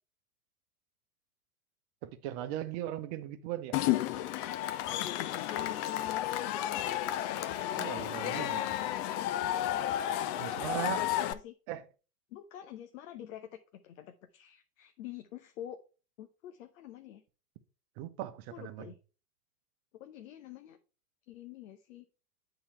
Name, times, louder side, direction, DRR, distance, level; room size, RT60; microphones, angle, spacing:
voice 1, 2.0-3.8 7.8-8.6 10.4-11.1 11.7-11.8 18.0-18.9, right 13 dB, 45° right, 1.0 m, -38 dB
Cheering / Crowd, 3.7-11.3, left 12 dB, 35° left, 0.5 m, -32 dB
voice 2, 5.0-7.2 8.2-9.9 11.0-11.6 12.3-15.8 16.2-17.2 18.5-19.0 19.9-20.8 21.3-22.1, left 11 dB, 60° left, 0.9 m, -47 dB
8.6 x 4.0 x 4.3 m
hypercardioid pair, 100°, 45 cm